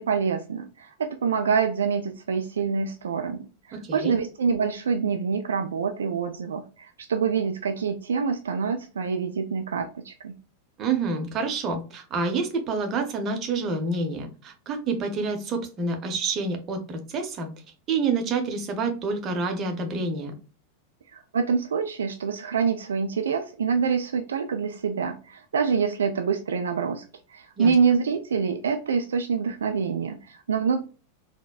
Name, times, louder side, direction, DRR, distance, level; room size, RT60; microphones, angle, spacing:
voice 1, 0.0-10.3 21.1-30.8, right 6 dB, 65° right, 6 dB, 0.3 m, -26 dB
voice 2, 3.7-4.2 10.8-17.5 17.9-20.3 27.6-27.7, right 4 dB, 30° right, 4 dB, 0.7 m, -28 dB
4.1 x 2.1 x 2.3 m, 0.36 s
figure-of-eight pair, 90°, 0 cm